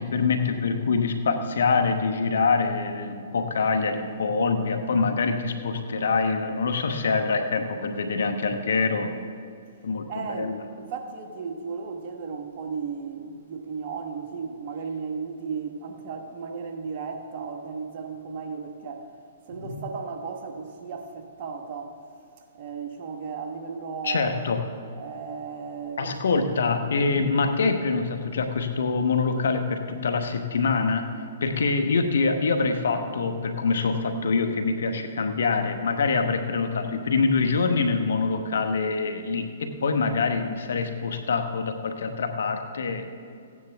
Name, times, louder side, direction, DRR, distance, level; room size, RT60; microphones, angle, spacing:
voice 1, 0.0-9.1 9.8-10.6 19.6-19.8 24.0-24.6 26.0-31.0 31.4-43.1, left 4 dB, 75° left, 1.1 m, -25 dB
voice 2, 10.1-19.1 19.5-22.0 22.6-24.3 25.0-26.5, right 5 dB, 50° right, 1.2 m, -35 dB
16.0 x 9.6 x 3.5 m
hypercardioid pair, 130°, 0 cm